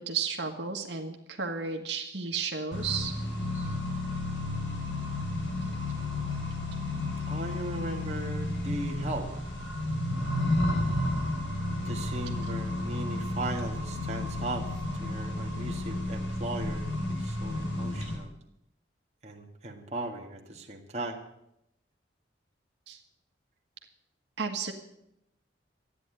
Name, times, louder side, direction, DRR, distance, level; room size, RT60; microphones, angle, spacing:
voice 1, 0.0-3.1 22.9-23.0 24.4-24.7, right 5 dB, 70° right, 3 dB, 1.6 m, -33 dB
Accelerating revving vroom, 2.7-18.1, left 1 dB, 90° left, 4.2 m, -32 dB
voice 2, 7.3-9.3 11.8-14.7 14.9-18.3 19.2-21.2, right 1 dB, 35° right, 1 dB, 1.7 m, -38 dB
13.5 x 10.0 x 9.0 m, 0.82 s
head